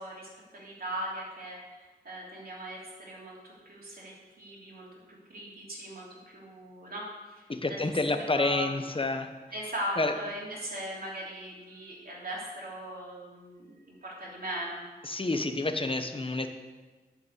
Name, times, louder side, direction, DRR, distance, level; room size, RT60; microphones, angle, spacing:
voice 1, 0.0-7.8 8.1-8.7 9.5-14.8, right 1 dB, 65° right, -5 dB, 3.3 m, -39 dB
voice 2, 7.5-9.3 10.0-10.1 15.0-16.5, left 2 dB, 35° left, 6 dB, 1.0 m, -29 dB
11.0 x 5.1 x 8.2 m, 1.3 s
wide cardioid pair, 75°, 16 cm